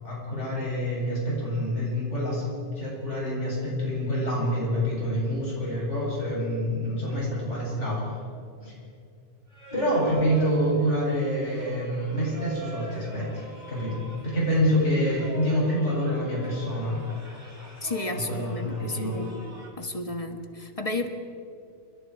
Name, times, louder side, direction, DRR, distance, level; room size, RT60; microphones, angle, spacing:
voice 1, 0.0-8.0 8.6-8.7 9.7-13.4 13.7-13.9 14.2-17.0 18.3-19.2, equal, 85° left, -6 dB, 8.6 m, -27 dB
Singing, 9.5-19.7, right 1 dB, 40° right, 4.4 m, -45 dB
voice 2, 17.8-19.4 19.8-21.1, left 2 dB, 30° left, 6 dB, 1.8 m, -32 dB
29.5 x 21.5 x 4.9 m, 2.4 s
omnidirectional pair, 1.2 m